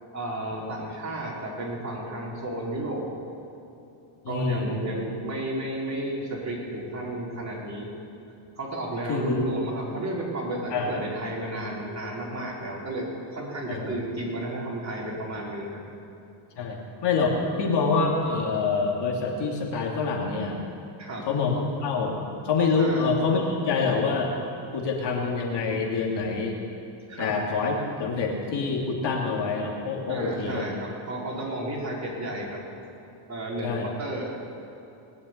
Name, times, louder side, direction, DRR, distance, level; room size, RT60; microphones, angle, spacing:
voice 1, 0.1-3.1 4.3-7.9 8.6-15.8 21.0-21.3 22.8-23.0 27.1-27.3 30.1-32.6 33.3-34.4, right 1 dB, 35° right, -4 dB, 4.5 m, -32 dB
voice 2, 4.2-4.7 9.1-9.5 10.7-11.0 13.7-14.0 16.6-20.6 21.3-22.2 22.4-24.4 24.7-26.6 27.2-30.7 33.6-33.9, left 4 dB, 55° left, -1 dB, 2.9 m, -26 dB
20.5 x 7.0 x 9.6 m, 2.8 s
cardioid pair, 110°, 49 cm